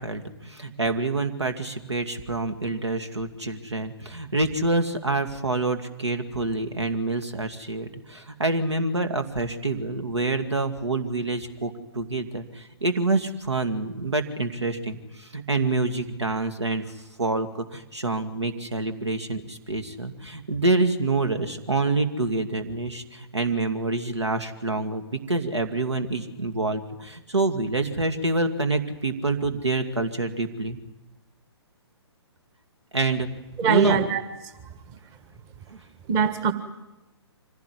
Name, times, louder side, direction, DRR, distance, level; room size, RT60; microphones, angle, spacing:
voice 1, 0.0-16.9 17.2-30.8 32.9-33.3 33.6-34.0 35.7-35.8, right 2 dB, 80° right, 8 dB, 2.4 m, -27 dB
voice 2, 33.6-34.2 36.1-36.5, right 6 dB, 25° right, 10 dB, 1.5 m, -22 dB
25.5 x 16.5 x 9.8 m, 1.0 s
figure-of-eight pair, 125°, 14 cm